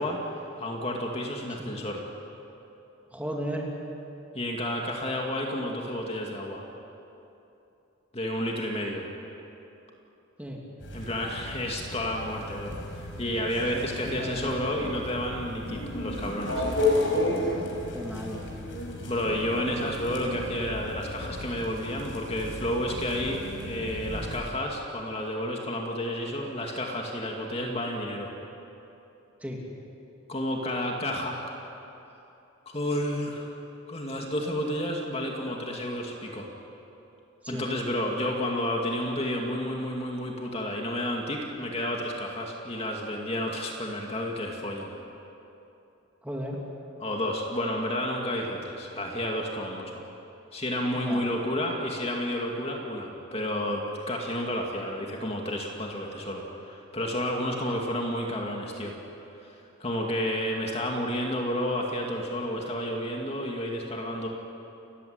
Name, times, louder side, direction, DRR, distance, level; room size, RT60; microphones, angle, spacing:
voice 1, 0.0-2.0 4.3-6.6 8.1-9.1 10.9-16.7 19.0-28.3 30.3-31.4 32.7-33.6 33.9-36.5 37.5-44.9 47.0-50.0 50.5-59.0 59.4-64.3, left 1 dB, 30° left, 0 dB, 2.4 m, -31 dB
voice 2, 3.1-3.7 10.4-10.6 13.7-14.9 17.9-18.4 29.4-29.6 37.4-37.7 46.2-46.6 50.9-51.2 57.5-57.8, equal, 5° right, -2 dB, 2.9 m, -35 dB
sound 1, 10.8-24.4, left 2 dB, 60° left, 5.7 m, -33 dB
29.5 x 16.0 x 9.5 m, 2.9 s
head